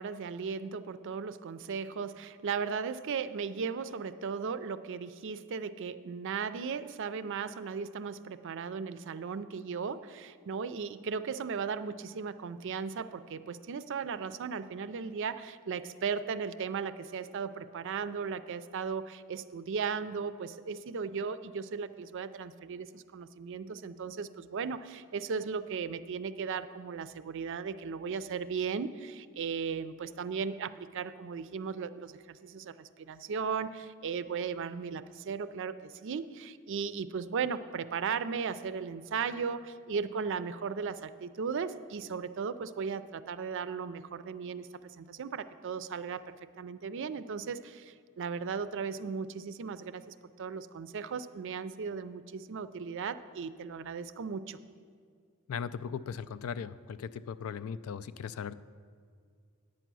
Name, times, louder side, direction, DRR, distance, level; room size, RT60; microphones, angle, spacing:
voice 1, 0.0-54.6, right 5 dB, 60° right, 13 dB, 0.4 m, -36 dB
voice 2, 55.5-58.5, left 7 dB, 75° left, 16 dB, 0.3 m, -38 dB
9.1 x 8.9 x 6.1 m, 2.1 s
head